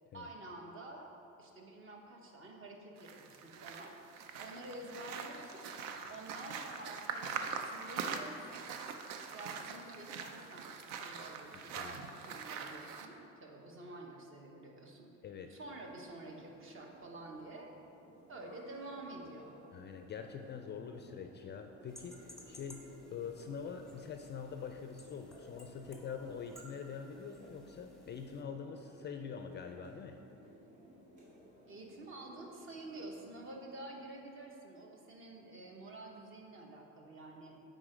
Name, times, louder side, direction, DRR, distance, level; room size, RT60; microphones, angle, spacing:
voice 1, 0.1-1.1 1.4-3.9 4.4-5.7 6.1-8.6 9.3-15.1 15.5-17.7 18.3-19.5 31.7-37.6, right 2 dB, 40° right, 1 dB, 1.1 m, -49 dB
sound 1, 3.0-13.1, right 5 dB, 85° right, 0.6 m, -43 dB
voice 2, 15.2-15.6 19.7-30.2, left 6 dB, 35° left, 5 dB, 0.4 m, -45 dB
sound 2, 15.6-33.5, equal, 65° right, 1.6 m, -59 dB
sound 3, 21.9-28.4, equal, ahead, 0.9 m, -58 dB
8.7 x 3.9 x 5.0 m, 2.8 s
cardioid pair, 125°, 32 cm